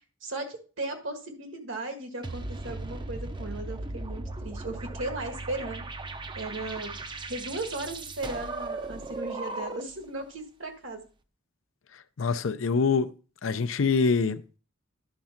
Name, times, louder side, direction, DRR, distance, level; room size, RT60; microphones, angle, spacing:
voice 1, 0.2-5.9 6.3-6.9 7.3-11.0, right 2 dB, 70° right, 1.6 m, -36 dB
sound 1, 2.2-10.0, right 2 dB, 25° right, 0.6 m, -37 dB
voice 2, 11.9-13.1 13.4-14.6, left 4 dB, 75° left, 0.6 m, -25 dB
10.5 x 3.7 x 5.8 m
head